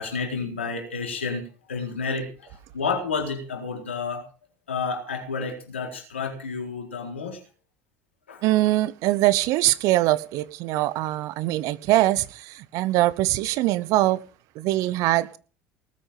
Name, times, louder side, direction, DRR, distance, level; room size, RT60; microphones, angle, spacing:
voice 1, 0.0-1.4 1.7-4.3 4.7-7.4 8.3-8.4, left 4 dB, 85° left, 4.3 m, -30 dB
voice 2, 8.4-14.2 14.5-15.4, right 16 dB, 60° right, 1.1 m, -22 dB
19.0 x 8.7 x 5.8 m
figure-of-eight pair, 65°, 6 cm